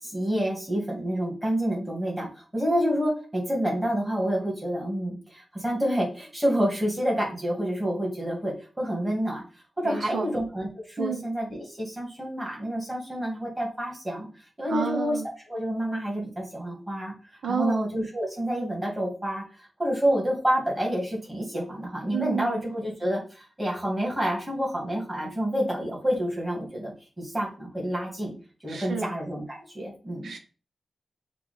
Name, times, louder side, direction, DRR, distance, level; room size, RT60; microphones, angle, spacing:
voice 1, 0.0-9.4 9.8-14.3 14.6-15.2 15.5-17.1 17.5-28.3 28.6-30.3, equal, 10° right, -3 dB, 1.7 m, -28 dB
voice 2, 9.8-10.4 11.0-11.2 14.7-15.3 17.4-17.8 22.1-22.6 28.7-29.1 30.2-30.4, right 6 dB, 85° right, 4 dB, 0.9 m, -30 dB
5.6 x 2.4 x 4.0 m, 0.36 s
wide cardioid pair, 175°, 0 cm